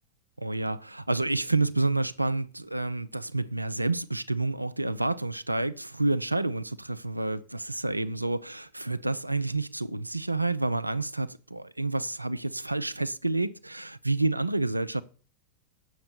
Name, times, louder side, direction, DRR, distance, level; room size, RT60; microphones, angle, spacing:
voice 1, 0.4-15.0, right 2 dB, 85° right, 0.4 m, -29 dB
7.8 x 6.5 x 6.6 m
figure-of-eight pair, 90°, 0 cm